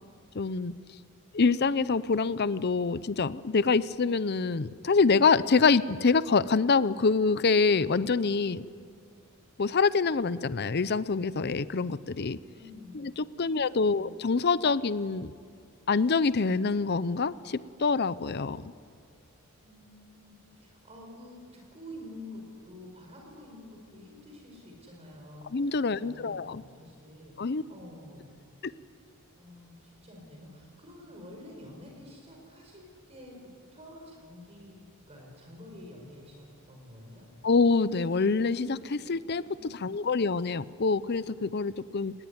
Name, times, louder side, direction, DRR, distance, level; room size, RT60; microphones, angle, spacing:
voice 1, 0.3-0.7 1.3-8.6 9.6-12.4 12.9-15.3 15.9-18.7 25.5-26.6 27.4-27.6 28.6-28.7 37.4-39.4 39.7-42.1, left 4 dB, 50° left, 16 dB, 0.6 m, -26 dB
voice 2, 12.5-13.0 13.4-14.0 19.5-27.4 27.7-28.3 29.3-34.8 35.1-37.3 39.4-40.1, left 1 dB, 30° right, 0 dB, 4.8 m, -49 dB
28.5 x 20.0 x 9.6 m, 2.1 s
head